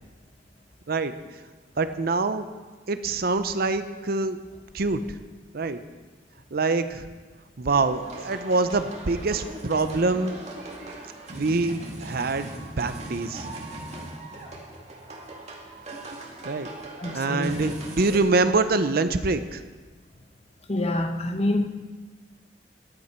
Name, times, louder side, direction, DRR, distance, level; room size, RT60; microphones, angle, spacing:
voice 1, 1.8-2.5 2.9-4.4 4.7-5.0 5.5-5.8 6.5-7.0 7.6-10.4 11.3-13.5 16.4-16.7 17.1-19.6, right 3 dB, 60° right, 0.6 m, -25 dB
sound 1, 7.7-18.2, right 1 dB, 40° right, 2.1 m, -40 dB
voice 2, 17.0-17.8 18.1-18.2 20.7-21.7, left 1 dB, 35° left, 1.0 m, -27 dB
14.5 x 11.5 x 4.5 m
head